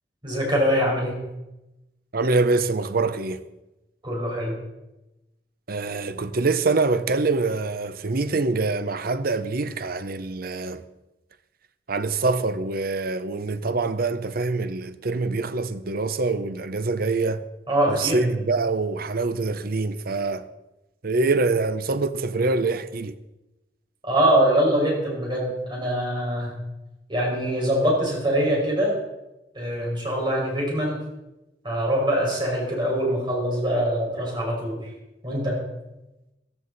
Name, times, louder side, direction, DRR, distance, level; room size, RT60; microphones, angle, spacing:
voice 1, 0.2-1.2 4.0-4.6 17.7-18.2 24.0-26.5 27.1-29.0 29.5-31.0 31.6-34.8 35.2-35.6, right 1 dB, 25° right, 5.4 m, -23 dB
voice 2, 2.1-3.4 5.7-10.8 11.9-17.5 17.9-20.5 21.0-23.2, right 3 dB, 55° right, 0.8 m, -25 dB
15.0 x 14.5 x 4.1 m
head